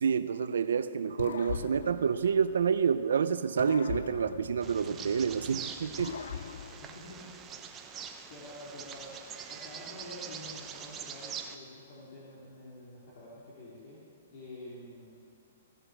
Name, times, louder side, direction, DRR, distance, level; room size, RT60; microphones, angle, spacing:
voice 1, 0.0-6.2, right 6 dB, 85° right, 12 dB, 0.4 m, -28 dB
sound 1, 1.2-3.1 3.6-5.5 6.0-7.7, left 7 dB, 80° left, 0.4 m, -41 dB
sound 2, 3.9-7.1, left 1 dB, 15° left, 1.2 m, -53 dB
Bird vocalization bird call bird song, 4.6-11.6, right 7 dB, 20° right, 0.8 m, -44 dB
voice 2, 6.8-7.2 7.7-7.9 8.3-14.0 14.3-15.1, left 1 dB, 55° left, -7 dB, 2.8 m, -48 dB
16.0 x 7.9 x 6.3 m, 2.6 s
hypercardioid pair, 155°, 0 cm